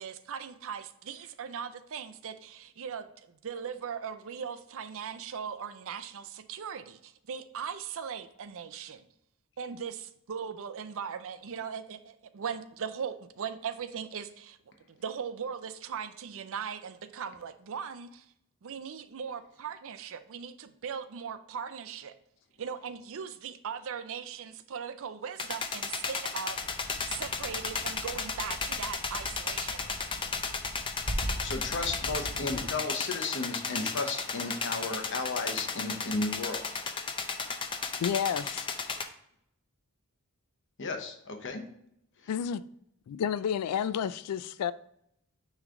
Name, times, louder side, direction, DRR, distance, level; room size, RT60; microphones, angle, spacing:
voice 1, 0.0-9.1 9.6-14.6 14.9-18.2 18.6-22.1 22.6-30.1, right 7 dB, 65° right, 0.5 m, -39 dB
sound 1, 25.4-39.0, left 4 dB, 20° left, 0.5 m, -34 dB
sound 2, 26.5-32.7, right 1 dB, 40° right, 1.0 m, -41 dB
voice 2, 31.4-36.6 40.8-41.6, left 3 dB, 55° left, 1.0 m, -34 dB
voice 3, 38.0-38.7 42.3-42.6 43.1-44.7, left 8 dB, 85° left, 0.3 m, -30 dB
9.4 x 3.2 x 3.7 m
head